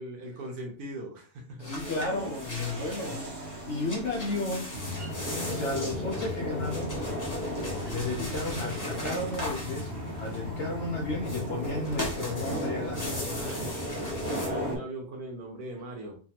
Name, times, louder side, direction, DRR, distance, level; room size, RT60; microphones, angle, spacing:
voice 1, 0.0-1.7 3.1-3.3 13.3-16.2, right 1 dB, 70° right, 0 dB, 1.1 m, -40 dB
voice 2, 1.6-4.8 5.1-7.0 7.8-13.4, left 2 dB, 75° left, 0 dB, 0.6 m, -33 dB
sound 1, 1.6-3.3 3.6-10.6 11.2-14.5, left 1 dB, 30° left, 0.3 m, -39 dB
sound 2, 1.8-14.8, equal, 30° right, 1.1 m, -37 dB
sound 3, 4.7-14.8, left 2 dB, 50° right, 0.8 m, -38 dB
3.3 x 2.3 x 2.8 m, 0.41 s
omnidirectional pair, 1.7 m